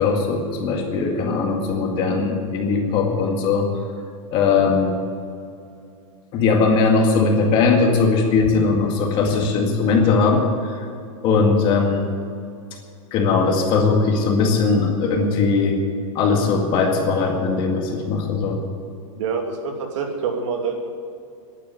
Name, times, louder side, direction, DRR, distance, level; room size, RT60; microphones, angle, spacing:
voice 1, 0.0-3.7 4.3-5.0 6.3-10.8 11.2-12.1 13.1-15.8 16.1-18.6, left 4 dB, 30° left, 2 dB, 2.0 m, -19 dB
voice 2, 19.2-20.9, right 5 dB, 65° right, 3 dB, 2.6 m, -26 dB
11.0 x 10.5 x 8.8 m, 2.5 s
supercardioid pair, 165°, 17 cm